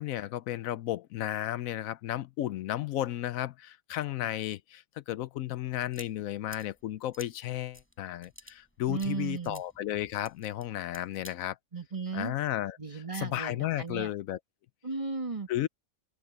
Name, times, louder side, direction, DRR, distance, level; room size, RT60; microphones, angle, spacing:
voice 1, 0.0-11.6 12.1-14.4 15.5-15.7, left 13 dB, 80° left, 1.0 m, -33 dB
sound 1, 5.4-11.4, equal, 10° left, 5.6 m, -53 dB
voice 2, 8.9-9.6 11.7-12.3 12.8-14.1 14.8-15.5, right 4 dB, 25° right, 2.0 m, -35 dB
open air
omnidirectional pair, 1.4 m